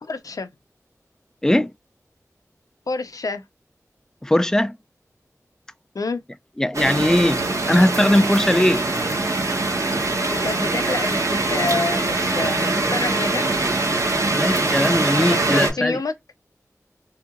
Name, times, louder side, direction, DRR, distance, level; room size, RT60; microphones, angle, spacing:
voice 1, 0.0-0.5 2.9-3.4 5.9-6.2 10.3-13.5 15.2-16.1, left 3 dB, 90° left, 0.5 m, -28 dB
voice 2, 4.2-4.7 6.6-8.9 14.3-16.0, left 1 dB, 10° left, 0.3 m, -19 dB
sound 1, 6.7-15.7, right 2 dB, 65° right, 1.4 m, -22 dB
3.5 x 2.8 x 2.3 m
wide cardioid pair, 65°, 6 cm